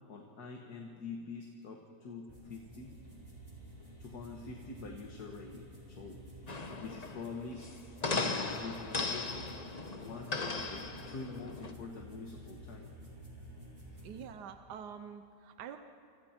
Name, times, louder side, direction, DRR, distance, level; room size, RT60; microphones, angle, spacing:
voice 1, 0.1-3.0 4.0-6.2 6.8-7.7 8.2-9.5 10.0-12.9 13.9-14.1, left 4 dB, 65° left, 2 dB, 2.1 m, -46 dB
sound 1, 2.3-14.3, equal, 20° right, 4.7 m, -51 dB
sound 2, 6.5-11.7, left 3 dB, 30° left, 1.0 m, -37 dB
voice 2, 14.0-15.8, right 8 dB, 75° right, 8 dB, 1.4 m, -46 dB
28.5 x 26.0 x 4.5 m, 2.6 s
omnidirectional pair, 1.8 m